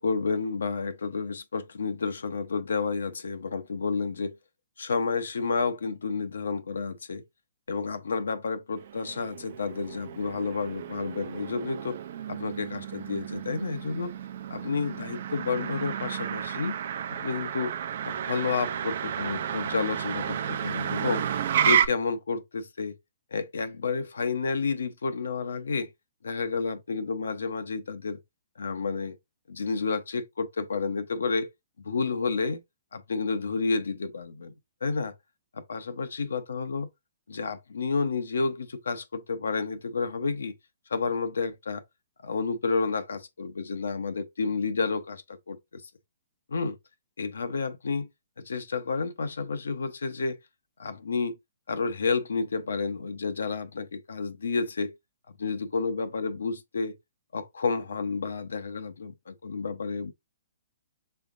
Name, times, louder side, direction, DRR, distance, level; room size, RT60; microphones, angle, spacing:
voice 1, 0.0-4.3 4.8-7.2 7.7-12.0 12.3-14.1 14.5-16.8 17.1-17.7 18.0-21.3 21.6-23.0 23.3-25.9 26.2-28.2 28.6-29.2 29.5-31.5 31.8-32.6 32.9-34.5 34.8-35.1 35.5-36.9 37.3-40.6 40.9-41.8 42.2-45.8 46.5-46.8 47.2-48.1 48.4-50.4 50.8-51.4 51.7-54.9 55.4-57.0 57.3-60.1, left 4 dB, 85° left, 0.8 m, -30 dB
Motor vehicle (road), 8.8-21.9, right 9 dB, 60° right, 0.6 m, -31 dB
5.6 x 3.6 x 2.6 m
hypercardioid pair, 140°, 0 cm